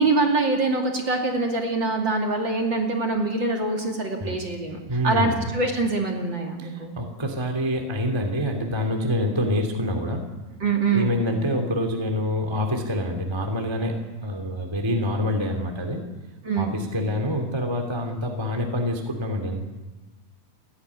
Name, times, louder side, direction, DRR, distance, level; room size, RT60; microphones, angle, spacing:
voice 1, 0.0-4.8 5.0-6.9 10.6-11.1 16.4-16.7, right 3 dB, 35° right, 1 dB, 2.9 m, -24 dB
voice 2, 4.9-5.5 6.6-10.2 10.9-14.0 14.2-16.0 16.6-19.6, left 1 dB, 10° right, 3 dB, 1.7 m, -26 dB
30.0 x 12.0 x 9.7 m, 1.2 s
omnidirectional pair, 4.4 m